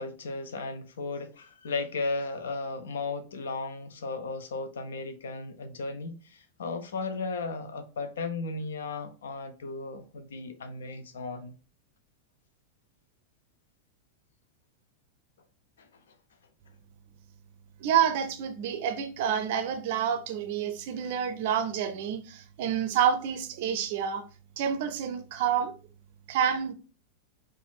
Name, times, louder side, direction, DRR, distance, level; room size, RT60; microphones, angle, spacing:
voice 1, 0.0-11.6 15.8-15.9, left 3 dB, 65° left, 0.4 m, -35 dB
voice 2, 17.8-24.2 24.6-25.7 26.3-26.7, right 8 dB, 50° right, 0.5 m, -28 dB
4.2 x 2.4 x 2.4 m
figure-of-eight pair, 90°, 0 cm